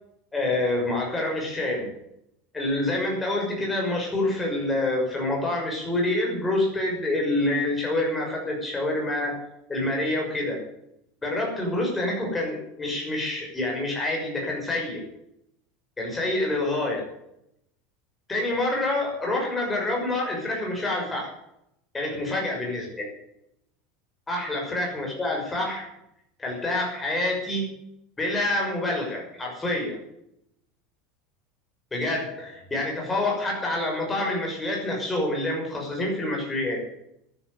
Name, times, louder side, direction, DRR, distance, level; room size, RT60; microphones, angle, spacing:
voice 1, 0.3-1.9 2.5-9.4 9.7-10.6 11.2-15.0 16.0-17.1 18.3-21.3 21.9-23.1 24.3-25.9 26.4-27.7 28.2-30.0 31.9-36.8, left 2 dB, 10° left, -1 dB, 6.1 m, -27 dB
13.0 x 11.0 x 8.0 m, 0.79 s
supercardioid pair, 155°, 0 cm